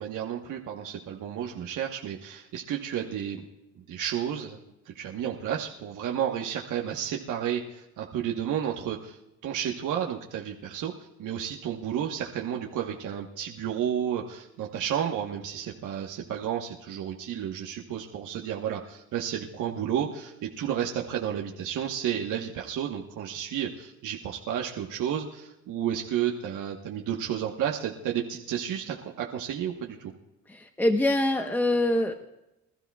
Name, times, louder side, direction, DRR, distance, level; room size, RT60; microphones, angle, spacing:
voice 1, 0.0-3.4 3.9-4.6 4.9-9.2 9.4-10.9 11.2-30.1, right 9 dB, 85° right, 0 dB, 1.2 m, -32 dB
voice 2, 30.5-32.1, left 1 dB, 5° left, 5 dB, 1.0 m, -24 dB
25.0 x 13.0 x 2.3 m, 0.93 s
cardioid pair, 90°, 30 cm